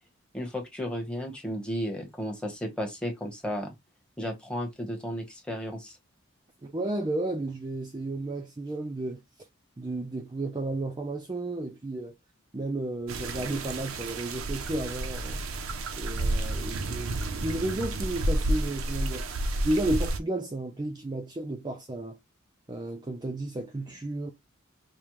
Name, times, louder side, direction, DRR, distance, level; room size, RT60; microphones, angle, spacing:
voice 1, 0.3-3.7 4.2-6.0, equal, 5° left, 1.0 m, -34 dB
voice 2, 6.6-9.2 9.8-12.2 12.5-15.4 16.0-19.2 19.6-22.2 22.7-24.3, right 1 dB, 20° right, 0.4 m, -32 dB
sound 1, 13.1-20.2, right 2 dB, 90° right, 0.6 m, -31 dB
5.0 x 2.1 x 3.0 m
head